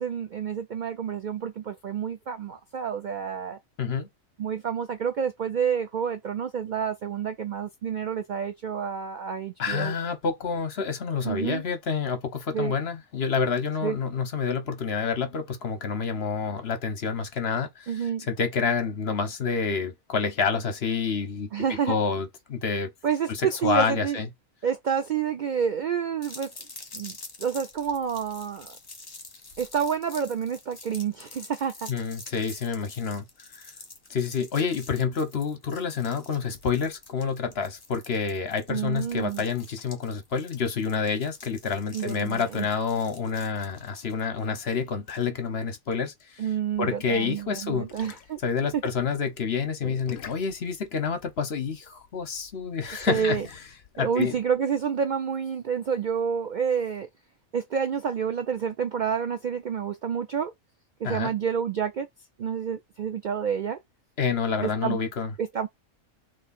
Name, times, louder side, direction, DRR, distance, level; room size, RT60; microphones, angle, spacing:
voice 1, 0.0-3.6 4.4-9.9 11.2-11.6 12.5-12.8 13.8-14.0 17.9-18.3 21.5-22.0 23.0-24.2 24.6-26.5 26.9-28.8 29.6-31.9 38.7-39.4 41.9-42.7 46.4-48.4 52.9-53.5 54.0-57.1 57.5-60.5 61.0-62.1 62.4-63.8 64.6-65.0 65.4-65.7, right 7 dB, 90° right, 0.4 m, -29 dB
voice 2, 9.6-21.5 21.9-22.9 23.3-24.2 31.9-33.2 33.5-33.7 34.1-46.4 46.8-47.9 48.4-53.4 53.9-54.3 61.0-61.3 64.2-65.3, left 5 dB, 50° left, 1.1 m, -28 dB
sound 1, 26.2-45.2, left 3 dB, 30° left, 1.4 m, -47 dB
sound 2, 46.8-54.5, left 8 dB, 80° left, 1.1 m, -44 dB
3.5 x 3.1 x 4.1 m
omnidirectional pair, 1.4 m